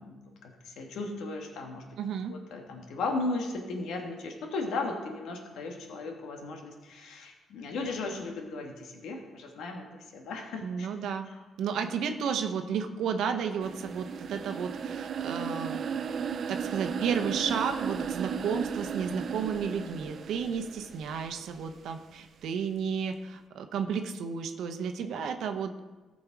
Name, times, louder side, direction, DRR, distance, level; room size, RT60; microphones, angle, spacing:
voice 1, 0.0-1.8 2.3-9.9 10.1-10.9 11.3-11.4, left 3 dB, 80° left, 2 dB, 1.5 m, -36 dB
voice 2, 2.0-2.3 10.6-11.3 11.6-15.8 16.5-25.8, right 6 dB, 75° right, 7 dB, 0.9 m, -32 dB
sound 1, 13.6-21.6, right 7 dB, 55° right, 0.5 m, -35 dB
14.5 x 5.3 x 4.7 m, 1.2 s
cardioid pair, 90°, 0 cm